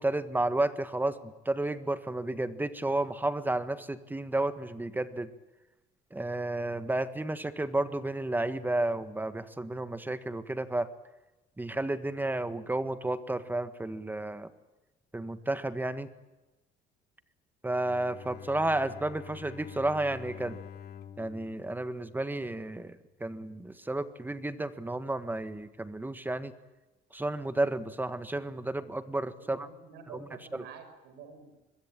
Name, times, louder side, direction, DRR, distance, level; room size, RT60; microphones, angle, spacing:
voice 1, 0.0-5.3 6.1-10.9 11.6-14.5 15.1-16.1 17.6-20.6 21.2-26.5 27.1-29.7 30.5-30.6, right 2 dB, 10° right, 11 dB, 1.6 m, -32 dB
Bowed string instrument, 17.8-22.8, left 9 dB, 65° left, 2.5 m, -47 dB
voice 2, 29.4-31.6, right 6 dB, 85° right, 8 dB, 6.5 m, -49 dB
25.0 x 22.0 x 9.1 m, 1.1 s
cardioid pair, 110°, 17 cm